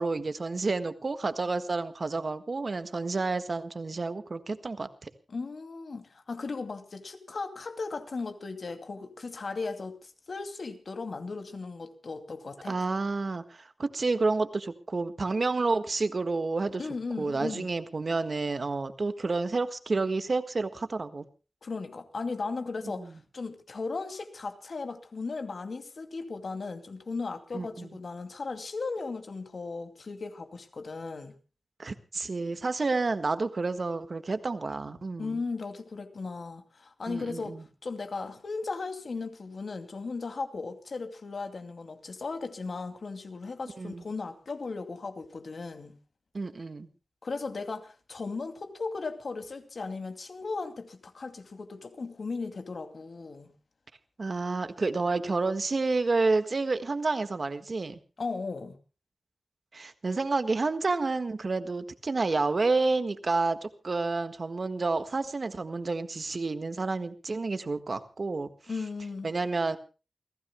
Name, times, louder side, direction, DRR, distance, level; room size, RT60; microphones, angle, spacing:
voice 1, 0.0-5.1 12.6-16.8 17.2-21.2 23.0-23.1 27.5-27.9 31.8-35.4 37.1-37.6 43.8-44.0 46.3-46.9 54.2-58.0 59.7-68.5 69.2-69.8, right 3 dB, 55° right, 1.5 m, -30 dB
voice 2, 5.3-12.8 16.8-17.7 21.6-31.3 35.2-46.0 47.2-53.5 58.2-58.8 68.7-69.3, left 4 dB, 65° left, 2.5 m, -36 dB
29.0 x 16.0 x 2.2 m
wide cardioid pair, 85°, 0 cm